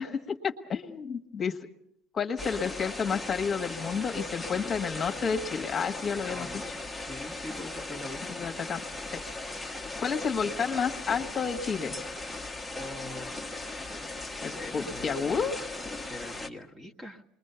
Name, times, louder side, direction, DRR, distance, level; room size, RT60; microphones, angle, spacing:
voice 1, 0.0-1.6 2.1-6.5 8.3-8.8 9.1-9.2 10.0-12.0 14.4-15.5, left 6 dB, 30° left, 5 dB, 1.5 m, -30 dB
sound 1, 2.4-16.5, left 2 dB, ahead, 1.2 m, -38 dB
voice 2, 5.9-6.7 7.0-8.4 12.7-13.4 13.7-15.5 16.0-17.2, left 1 dB, 15° right, 4 dB, 1.7 m, -43 dB
27.0 x 21.5 x 6.9 m, 0.74 s
cardioid pair, 130°, 0 cm